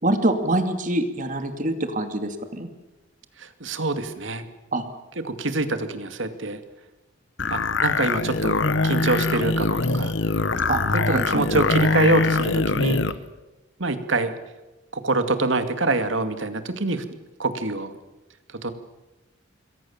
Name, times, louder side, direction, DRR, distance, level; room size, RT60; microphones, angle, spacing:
voice 1, 0.0-2.7 4.7-4.8 10.7-11.5, right 1 dB, 40° right, 7 dB, 2.7 m, -25 dB
voice 2, 3.4-4.4 5.2-6.6 7.5-10.1 10.9-13.0 13.8-14.3 14.9-17.0 17.4-17.9 18.6-18.7, right 2 dB, 70° right, 9 dB, 2.4 m, -25 dB
sound 1, 7.4-13.2, left 3 dB, 65° left, 1.2 m, -23 dB
27.0 x 22.5 x 7.4 m, 1.1 s
head